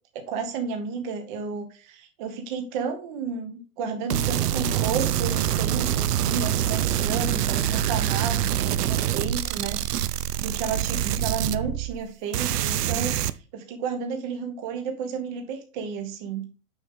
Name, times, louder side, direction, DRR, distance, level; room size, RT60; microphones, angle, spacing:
voice 1, 0.1-16.4, right 5 dB, 30° right, 6 dB, 0.9 m, -32 dB
sound 1, 4.1-12.1 12.3-13.3, right 11 dB, 80° right, 0.6 m, -25 dB
6.3 x 6.1 x 3.5 m, 0.35 s
hypercardioid pair, 155°, 46 cm